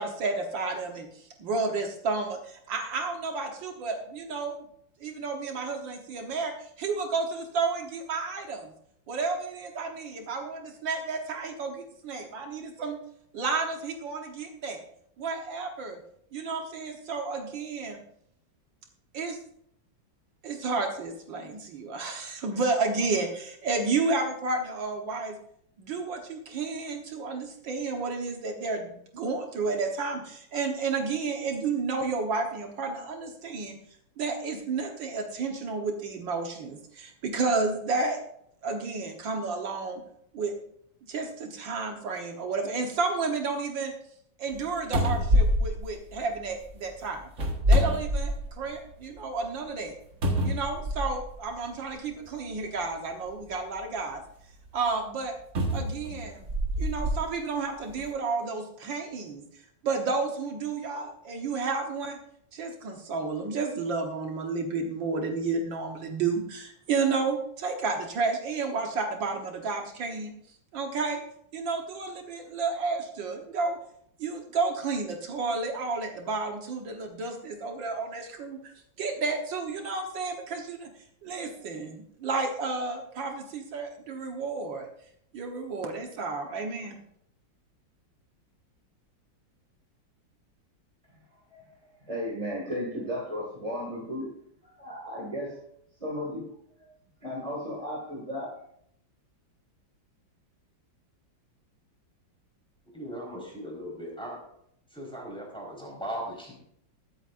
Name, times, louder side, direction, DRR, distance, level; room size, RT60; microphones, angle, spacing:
voice 1, 0.0-4.6 5.0-8.7 9.1-13.0 13.3-14.8 15.2-16.0 16.3-18.0 19.1-19.4 20.4-25.4 25.8-33.8 34.2-38.2 38.6-40.0 40.3-40.5 41.1-43.9 44.4-47.3 47.7-50.0 50.4-54.2 54.7-55.4 55.7-56.5 56.8-59.4 59.8-62.2 62.5-70.3 70.7-71.2 71.5-73.8 74.2-78.7 79.0-80.9 81.2-84.9 85.3-87.0, right 4 dB, 75° right, 3 dB, 1.9 m, -31 dB
sound 1, 44.5-44.6 44.9-46.6 47.3-48.7 49.2-49.3 50.2-51.3 52.3-52.4 55.5-57.2 57.9-58.0, equal, 40° right, 1.8 m, -25 dB
voice 2, 92.1-94.3 94.6-95.7 96.0-96.5 96.8-96.9 97.2-98.6, equal, 20° right, -3 dB, 2.2 m, -35 dB
voice 3, 102.9-104.4 104.9-106.5, equal, ahead, -3 dB, 4.3 m, -38 dB
21.5 x 8.4 x 2.6 m, 0.71 s
omnidirectional pair, 2.1 m